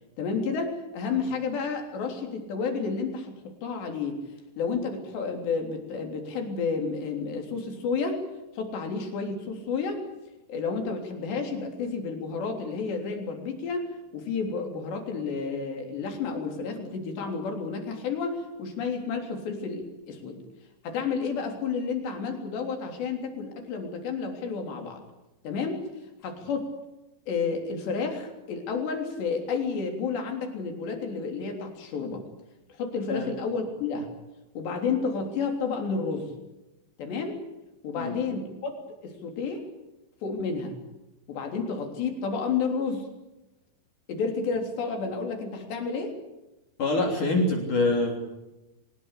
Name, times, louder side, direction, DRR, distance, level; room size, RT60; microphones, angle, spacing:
voice 1, 0.2-4.2 4.6-8.2 8.6-10.0 10.5-13.9 14.1-20.4 20.8-25.0 25.4-25.8 26.2-26.7 27.3-32.2 32.7-34.1 34.6-36.3 37.0-37.4 37.8-38.8 39.0-39.7 40.2-40.8 41.3-43.1 44.1-46.2, left 5 dB, 70° left, 4 dB, 5.6 m, -31 dB
voice 2, 46.8-48.2, left 2 dB, 45° left, 2 dB, 4.6 m, -25 dB
23.5 x 20.5 x 8.4 m, 1.0 s
omnidirectional pair, 5.2 m